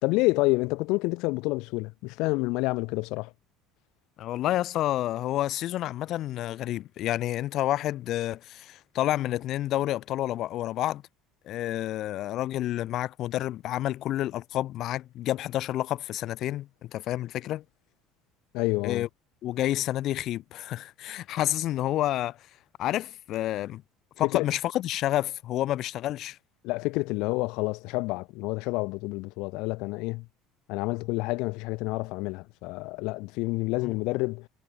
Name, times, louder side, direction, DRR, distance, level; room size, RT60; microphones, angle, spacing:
voice 1, 0.0-3.3 18.5-19.0 24.2-24.4 26.6-30.3 30.7-34.5, left 24 dB, 70° left, 0.8 m, -28 dB
voice 2, 4.2-11.0 11.4-17.6 18.8-19.1 19.4-22.5 22.8-23.8 24.2-26.4 33.8-33.9, left 14 dB, 55° left, 0.3 m, -29 dB
supercardioid pair, 115°, 0 cm